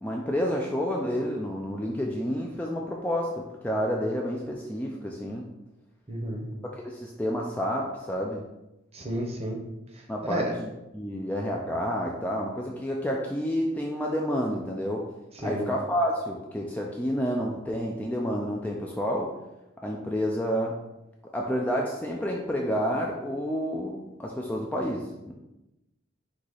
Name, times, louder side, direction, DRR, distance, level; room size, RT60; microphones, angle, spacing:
voice 1, 0.0-5.5 6.7-8.4 10.1-10.7 10.9-15.1 15.4-19.3 19.8-20.8 21.3-25.3, equal, 10° left, -1 dB, 0.3 m, -29 dB
voice 2, 6.1-6.5 8.9-9.6 9.9-10.6 15.3-15.6, equal, 30° right, 1 dB, 0.7 m, -32 dB
4.7 x 2.8 x 3.9 m, 0.95 s
head